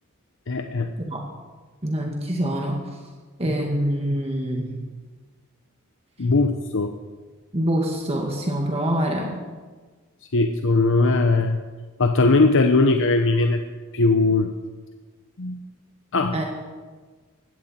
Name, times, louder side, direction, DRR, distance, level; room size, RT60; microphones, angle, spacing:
voice 1, 0.5-0.9 6.2-6.9 10.3-11.6 12.0-13.6 13.9-14.5 15.4-15.6 16.1-16.4, left 3 dB, 60° left, 6 dB, 0.9 m, -19 dB
voice 2, 1.8-2.8 3.4-4.8 7.5-9.4 16.3-16.4, right 1 dB, 30° right, 0 dB, 1.9 m, -25 dB
20.0 x 15.5 x 4.4 m, 1.4 s
head